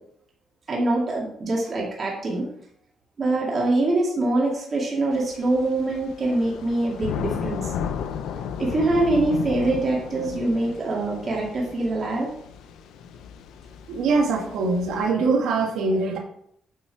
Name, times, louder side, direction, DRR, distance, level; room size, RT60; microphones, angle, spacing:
voice 1, 0.7-2.5 3.2-7.7 8.6-12.3, right 2 dB, 40° right, -3 dB, 2.3 m, -24 dB
Thunder / Rain, 5.1-15.1, left 7 dB, 85° left, 0.6 m, -34 dB
voice 2, 13.9-16.2, right 3 dB, 85° right, 2 dB, 1.5 m, -23 dB
8.1 x 4.3 x 4.7 m, 0.69 s
cardioid pair, 90°, 0 cm